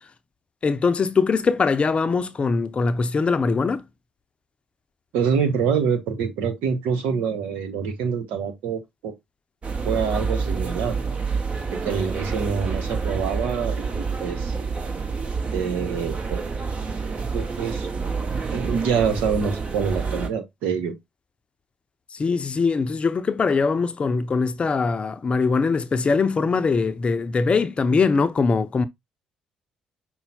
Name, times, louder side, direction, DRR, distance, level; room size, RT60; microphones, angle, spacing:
voice 1, 0.6-3.8 22.1-28.9, left 4 dB, 35° left, 0.6 m, -22 dB
voice 2, 5.1-9.1 9.8-11.0 11.7-14.6 15.5-16.4 17.3-17.9 18.5-20.9, right 6 dB, 70° right, 1.0 m, -26 dB
sound 1, 9.6-20.3, right 4 dB, 35° right, 1.1 m, -28 dB
5.6 x 2.1 x 4.1 m
hypercardioid pair, 50°, 3 cm